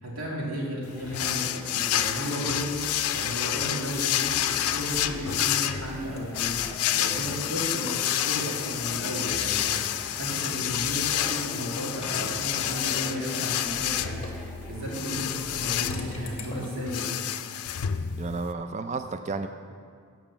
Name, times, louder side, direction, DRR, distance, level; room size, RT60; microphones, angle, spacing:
voice 1, 0.0-17.1, equal, 70° right, -4 dB, 2.5 m, -34 dB
sound 1, 0.9-16.9, equal, 5° right, 1.2 m, -44 dB
sound 2, 1.1-18.5, left 11 dB, 80° left, 0.4 m, -29 dB
sound 3, 4.7-5.4 5.9-10.0 10.4-14.5 15.5-16.9, left 3 dB, 25° left, 1.1 m, -47 dB
voice 2, 18.2-19.5, right 4 dB, 30° right, 8 dB, 0.3 m, -32 dB
8.8 x 6.1 x 7.2 m, 2.1 s
head